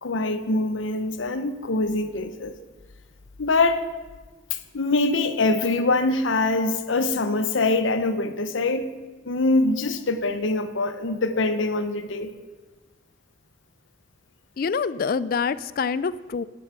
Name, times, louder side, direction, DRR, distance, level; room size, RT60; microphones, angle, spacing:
voice 1, 0.0-2.5 3.4-3.8 4.7-9.0 9.2-12.3, left 2 dB, 85° left, 10 dB, 0.9 m, -24 dB
voice 2, 14.6-16.4, left 5 dB, 50° left, 17 dB, 0.3 m, -26 dB
12.0 x 8.2 x 5.9 m, 1.3 s
head